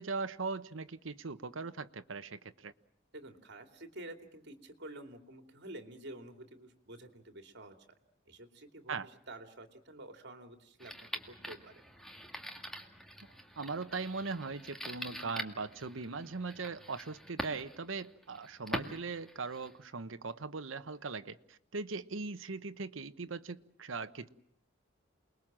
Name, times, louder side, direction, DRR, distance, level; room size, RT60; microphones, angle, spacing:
voice 1, 0.0-2.7 8.9-9.1 13.6-24.3, right 4 dB, 75° right, 10 dB, 1.0 m, -40 dB
voice 2, 3.1-7.7 8.3-11.8, right 1 dB, 60° right, 7 dB, 2.8 m, -50 dB
sound 1, 10.8-19.9, equal, ahead, 2.1 m, -45 dB
28.5 x 21.0 x 7.5 m, 0.71 s
head